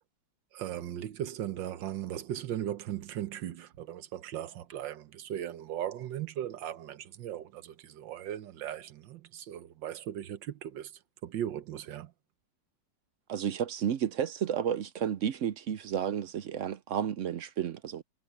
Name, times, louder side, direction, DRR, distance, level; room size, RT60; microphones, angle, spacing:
voice 1, 0.5-10.9 11.2-12.1, right 11 dB, 85° right, 1.6 m, -38 dB
voice 2, 13.3-18.0, right 9 dB, 65° right, 0.7 m, -32 dB
omnidirectional pair, 2.0 m